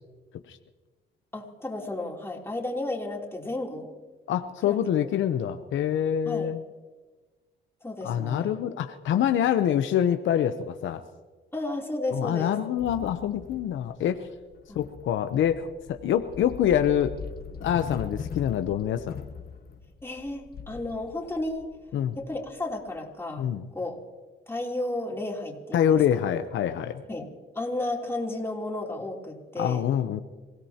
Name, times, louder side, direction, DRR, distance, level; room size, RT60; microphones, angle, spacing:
voice 1, 1.3-4.0 4.7-4.8 6.3-6.5 7.8-8.5 11.5-12.5 14.7-14.8 20.0-21.7 22.2-24.0 24.5-26.0 27.1-29.8, left 2 dB, 10° left, -1 dB, 3.3 m, -33 dB
voice 2, 4.3-6.6 8.0-11.0 12.1-14.3 14.7-17.1 17.6-19.2 21.9-22.2 23.4-23.7 25.7-27.0 29.6-30.2, left 9 dB, 75° left, 8 dB, 0.8 m, -25 dB
sound 1, 12.8-23.0, left 6 dB, 50° left, 1.1 m, -41 dB
27.5 x 17.0 x 2.9 m, 1.3 s
cardioid pair, 90°, 20 cm